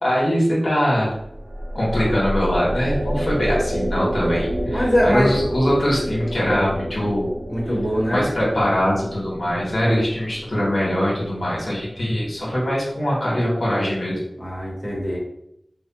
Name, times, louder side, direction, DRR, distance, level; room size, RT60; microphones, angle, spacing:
voice 1, 0.0-1.1 1.7-7.3 8.1-14.2, equal, 80° left, -5 dB, 1.2 m, -22 dB
sound 1, 1.2-12.6, equal, 90° right, 1.0 m, -29 dB
voice 2, 4.7-5.3 7.5-8.3 9.8-10.0 14.4-15.2, equal, 15° left, -5 dB, 1.3 m, -22 dB
3.2 x 2.1 x 4.0 m, 0.77 s
wide cardioid pair, 40°, 0 cm